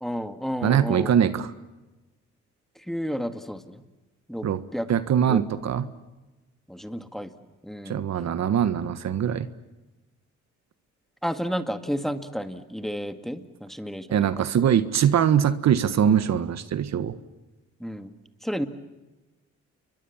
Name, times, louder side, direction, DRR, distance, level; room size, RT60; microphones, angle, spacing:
voice 1, 0.0-1.1 2.9-3.8 4.3-4.9 5.2-5.4 6.7-7.3 7.6-8.0 11.2-14.4 17.8-18.1 18.4-18.7, equal, ahead, 9 dB, 2.1 m, -31 dB
voice 2, 0.6-1.5 4.4-4.6 4.9-5.9 7.9-9.5 14.1-17.2, right 9 dB, 60° right, 13 dB, 1.5 m, -22 dB
30.0 x 23.0 x 7.3 m, 1.1 s
cardioid pair, 90°, 30 cm